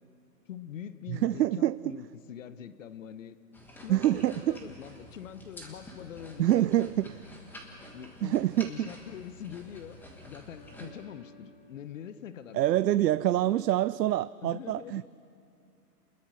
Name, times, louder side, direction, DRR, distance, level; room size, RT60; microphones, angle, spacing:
voice 1, 0.5-3.4 3.8-6.9 7.9-10.0 10.3-13.6 14.4-15.0, left 9 dB, 50° left, 0.9 m, -44 dB
voice 2, 1.1-1.8 3.9-4.6 6.4-7.1 8.2-8.9 12.5-15.1, right 13 dB, 80° right, 0.6 m, -26 dB
sound 1, 3.5-10.9, left 1 dB, 5° left, 1.3 m, -49 dB
sound 2, 10.6-13.5, left 3 dB, 75° left, 6.1 m, -59 dB
27.5 x 21.5 x 6.2 m
hypercardioid pair, 155°, 49 cm